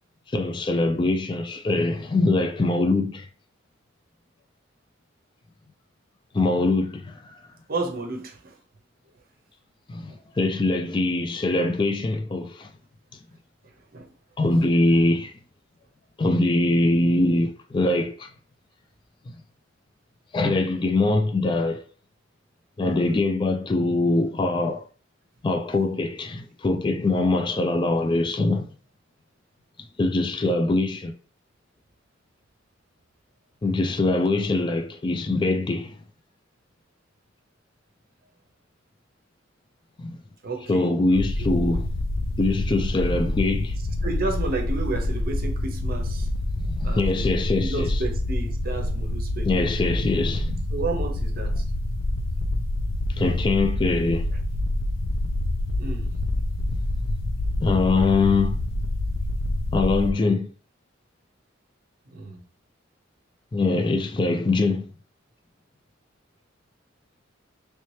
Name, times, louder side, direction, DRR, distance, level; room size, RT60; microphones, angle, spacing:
voice 1, 0.3-3.3 6.3-7.3 9.9-12.7 14.4-15.3 16.2-18.3 19.3-19.4 20.3-21.8 22.8-24.8 25.4-28.7 30.0-31.1 33.6-36.0 40.0-40.2 40.7-41.8 42.4-43.8 46.7-48.0 49.5-50.6 53.1-54.3 56.7-56.8 57.6-58.6 59.7-60.5 63.5-64.9, left 2 dB, 25° left, 0.3 m, -23 dB
voice 2, 7.7-8.6 13.6-14.1 14.5-14.6 30.4-30.7 40.4-41.2 43.8-49.8 50.7-51.6 54.3-54.4 55.8-56.1 62.1-62.5, right 3 dB, 45° right, 0.7 m, -33 dB
sound 1, 41.1-60.1, left 1 dB, 80° left, 0.5 m, -27 dB
3.2 x 2.8 x 3.1 m
head